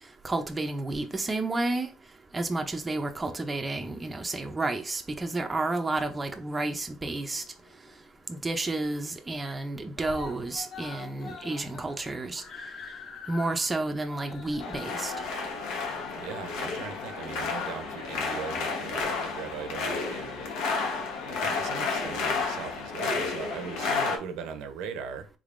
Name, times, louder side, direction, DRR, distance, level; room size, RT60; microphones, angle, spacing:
voice 1, 0.2-1.9 2.3-7.4 8.3-12.4 13.3-15.1, right 2 dB, 15° right, 0.4 m, -31 dB
Screaming, 7.1-8.0 8.3-8.4 8.7-8.8 9.1-9.6 9.9-16.8 17.6-17.7, left 4 dB, 40° left, 0.6 m, -45 dB
sound 1, 14.6-24.2, left 4 dB, 90° left, 0.9 m, -31 dB
voice 2, 16.1-20.5 21.3-25.3, right 6 dB, 75° right, 0.6 m, -39 dB
3.6 x 3.4 x 2.5 m
cardioid pair, 150°, 0 cm